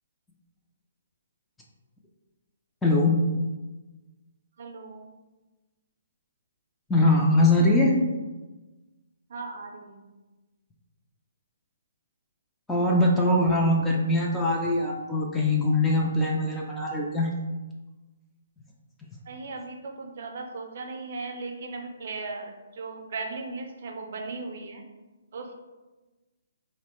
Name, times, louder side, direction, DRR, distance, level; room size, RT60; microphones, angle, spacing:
voice 1, 2.8-3.2 6.9-7.9 12.7-17.3, left 1 dB, 5° left, -3 dB, 0.3 m, -22 dB
voice 2, 4.6-5.1 9.3-10.0 19.3-24.8 25.3-25.5, right 3 dB, 55° right, 3 dB, 0.5 m, -37 dB
2.8 x 2.1 x 2.9 m, 1.2 s
hypercardioid pair, 150°, 0 cm